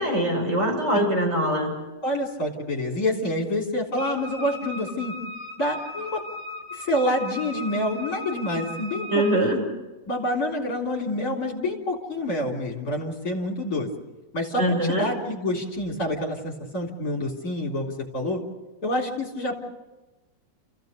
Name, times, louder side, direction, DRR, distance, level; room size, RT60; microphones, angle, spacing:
voice 1, 0.0-1.7 9.1-9.5 14.6-15.1, right 1 dB, 30° right, -1 dB, 6.4 m, -23 dB
voice 2, 0.9-1.4 2.0-5.1 5.6-6.2 6.7-9.6 10.1-13.9 14.3-18.4 18.8-19.5, left 1 dB, 45° left, 0 dB, 4.1 m, -27 dB
Wind instrument woodwind instrument, 4.0-9.5, left 3 dB, 90° right, 4.4 m, -37 dB
29.5 x 15.5 x 6.8 m, 1.1 s
omnidirectional pair, 2.4 m